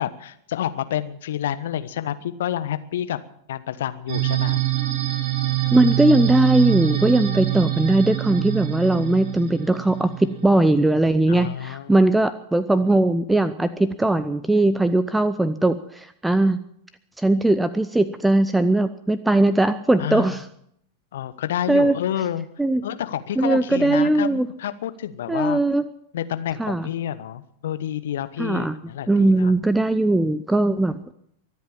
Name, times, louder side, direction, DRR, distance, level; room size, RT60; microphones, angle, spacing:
voice 1, 0.0-3.2 3.5-4.6 11.3-11.9 20.0-20.4 21.1-22.5 22.8-25.6 26.1-29.5, left 11 dB, 60° left, 12 dB, 1.1 m, -29 dB
sound 1, 4.1-10.6, right 16 dB, 40° right, 3.2 m, -25 dB
voice 2, 5.7-16.6 17.2-20.4 21.7-21.9 22.6-22.8 23.4-24.5 25.3-25.9 26.6-26.9 28.4-28.8 29.1-31.1, right 2 dB, 5° right, 13 dB, 0.7 m, -19 dB
23.5 x 8.1 x 7.3 m, 0.70 s
figure-of-eight pair, 90°, 0 cm